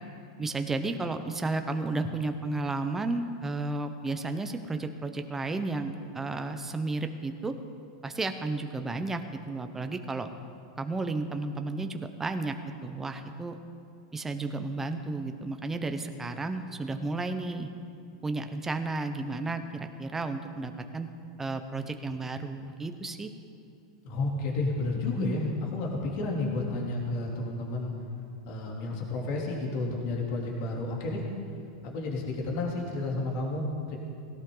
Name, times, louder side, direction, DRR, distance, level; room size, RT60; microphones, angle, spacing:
voice 1, 0.4-7.5 8.0-10.3 10.8-12.5 12.8-13.6 14.1-17.7 18.2-21.1 21.4-23.3 25.2-25.5, right 3 dB, 10° right, 7 dB, 1.0 m, -33 dB
voice 2, 24.0-27.9 28.5-31.3 31.8-34.0, left 2 dB, 55° left, -2 dB, 3.3 m, -31 dB
17.5 x 17.0 x 4.0 m, 2.7 s
supercardioid pair, 130°, 3 cm